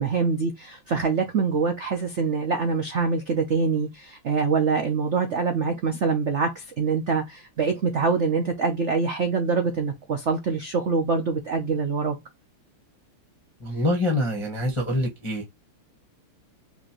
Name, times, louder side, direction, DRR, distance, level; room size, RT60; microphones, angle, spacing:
voice 1, 0.0-12.2, right 5 dB, 90° right, 0.6 m, -25 dB
voice 2, 13.6-15.4, left 1 dB, 20° left, 0.8 m, -25 dB
5.5 x 3.0 x 2.9 m
omnidirectional pair, 2.3 m